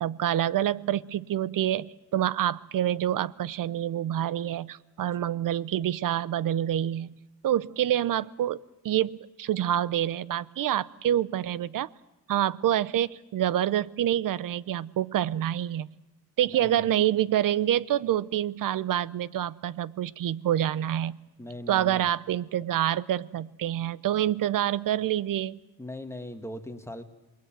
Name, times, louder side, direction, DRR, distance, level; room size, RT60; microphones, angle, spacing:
voice 1, 0.0-11.9 12.3-15.9 16.4-21.2 21.7-25.6, right 11 dB, 65° right, 20 dB, 0.8 m, -27 dB
voice 2, 16.5-16.8 21.4-22.0 25.8-27.0, left 1 dB, 5° left, 7 dB, 2.0 m, -39 dB
28.0 x 21.0 x 7.5 m, 1.0 s
cardioid pair, 85°, 36 cm